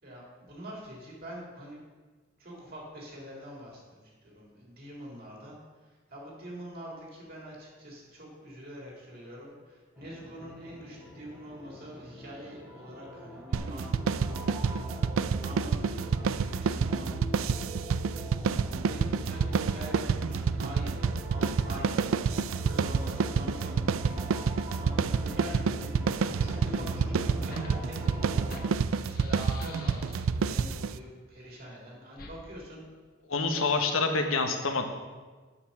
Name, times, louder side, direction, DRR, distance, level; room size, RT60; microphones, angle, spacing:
voice 1, 0.0-1.8 2.4-5.6 6.1-17.1 18.9-21.9 22.6-23.7 24.5-25.9 26.4-28.4 29.0-32.8, equal, 50° right, -3 dB, 3.5 m, -45 dB
sound 1, 10.0-28.7, left 1 dB, 10° right, 1.6 m, -44 dB
sound 2, 13.5-31.0, right 5 dB, 75° right, 0.4 m, -29 dB
Fire, 26.0-30.5 32.1-32.4, left 4 dB, 45° left, 1.4 m, -50 dB
voice 2, 33.3-34.9, left 3 dB, 80° left, 5 dB, 1.2 m, -27 dB
8.6 x 6.9 x 7.1 m, 1.4 s
head